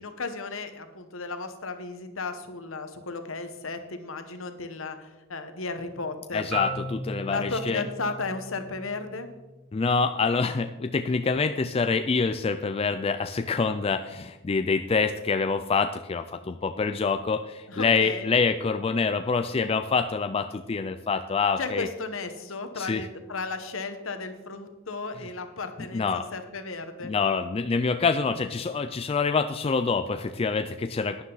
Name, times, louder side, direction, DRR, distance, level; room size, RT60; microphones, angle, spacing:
voice 1, 0.0-6.5 7.3-9.3 17.7-18.3 21.6-27.1, left 3 dB, 70° left, 9 dB, 1.2 m, -34 dB
voice 2, 6.3-7.8 9.7-21.9 22.8-23.1 25.9-26.2 27.0-31.2, left 4 dB, 30° left, 8 dB, 0.4 m, -26 dB
Marimba xylophone, 6.5-10.7, left 2 dB, 5° right, 3.1 m, -37 dB
11.5 x 9.9 x 4.0 m, 1.1 s
head